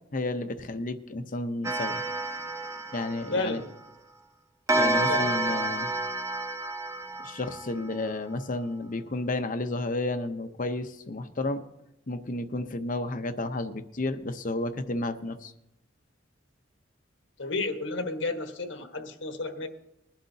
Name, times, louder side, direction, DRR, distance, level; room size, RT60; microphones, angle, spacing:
voice 1, 0.1-2.0 2.9-3.6 4.8-5.9 7.2-11.6 12.1-15.5, left 2 dB, 45° left, 9 dB, 0.8 m, -32 dB
Clock, 1.6-3.9 4.7-8.1, right 2 dB, 15° right, 0.7 m, -29 dB
voice 2, 3.3-3.6 5.1-5.4 17.4-19.7, left 3 dB, 75° left, 5 dB, 1.4 m, -31 dB
21.0 x 11.5 x 2.8 m, 0.85 s
head